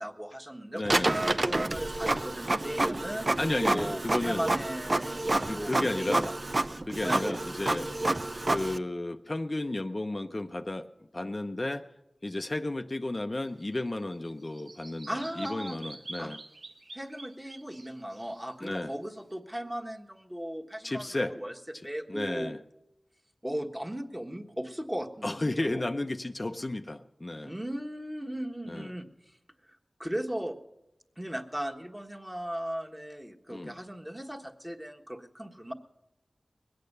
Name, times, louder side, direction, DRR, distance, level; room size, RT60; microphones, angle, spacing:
voice 1, 0.0-3.2 3.7-6.3 7.0-7.2 15.1-15.8 16.2-16.3 16.9-22.5 23.4-25.8 27.4-29.1 30.0-30.6 31.2-35.7, equal, 10° right, 2 dB, 1.4 m, -37 dB
voice 2, 0.7-1.2 3.4-4.4 5.5-6.3 6.8-7.9 8.5-11.9 12.2-16.4 18.6-18.9 20.8-21.3 22.1-22.6 25.2-27.5 28.7-28.9 33.5-33.7, left 2 dB, 40° left, 6 dB, 0.6 m, -33 dB
Printer, 0.8-8.8, right 2 dB, 45° right, 0.5 m, -29 dB
Bird vocalization bird call bird song, 13.4-19.3, right 2 dB, 90° right, 1.1 m, -48 dB
21.0 x 8.6 x 6.7 m, 0.93 s
wide cardioid pair, 45°, 0 cm